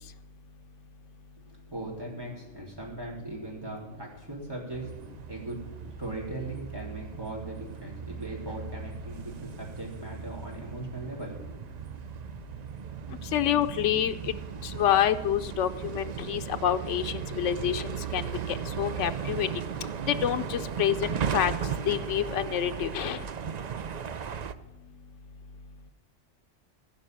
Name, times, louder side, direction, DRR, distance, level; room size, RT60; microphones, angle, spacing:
voice 1, 1.5-4.9 5.3-5.6 6.0-11.4, right 2 dB, 20° right, -4 dB, 3.4 m, -39 dB
sound 1, 4.7-24.5, right 7 dB, 50° right, 0.5 m, -37 dB
voice 2, 13.2-14.3 14.6-19.5 20.1-21.5 21.9-23.2, left 10 dB, 90° left, 9 dB, 0.9 m, -27 dB
16.0 x 5.4 x 9.0 m, 1.0 s
omnidirectional pair, 1.2 m